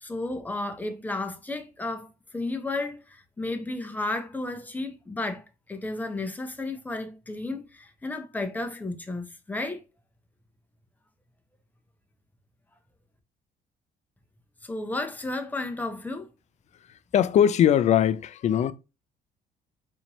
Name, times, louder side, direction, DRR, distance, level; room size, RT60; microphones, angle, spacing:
voice 1, 0.0-9.8 14.6-16.3, left 2 dB, 10° left, 0.7 m, -33 dB
voice 2, 17.1-18.7, left 9 dB, 45° left, 0.4 m, -20 dB
4.2 x 2.7 x 3.0 m
cardioid pair, 110°, 17 cm